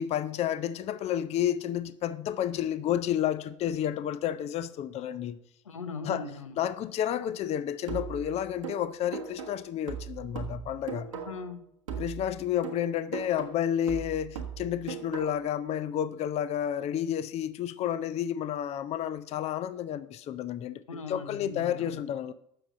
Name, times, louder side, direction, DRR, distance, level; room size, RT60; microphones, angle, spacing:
voice 1, 0.0-5.4 6.0-6.2 6.6-11.1 12.0-20.8 21.1-22.3, left 10 dB, 40° left, 0.5 m, -31 dB
voice 2, 5.6-6.6 11.2-11.6 20.9-22.0, left 4 dB, 90° left, 0.8 m, -39 dB
sound 1, 7.9-11.6 11.9-15.6, right 8 dB, 85° right, 1.3 m, -39 dB
7.7 x 6.1 x 6.4 m
hypercardioid pair, 70°, 16 cm